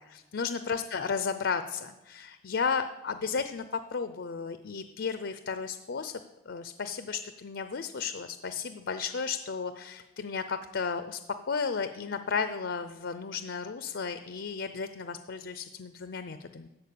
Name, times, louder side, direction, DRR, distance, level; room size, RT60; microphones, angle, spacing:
voice 1, 0.1-3.6 3.9-6.1 6.5-11.2 11.5-16.7, left 5 dB, 80° left, 10 dB, 0.5 m, -34 dB
13.5 x 4.5 x 8.4 m, 1.1 s
head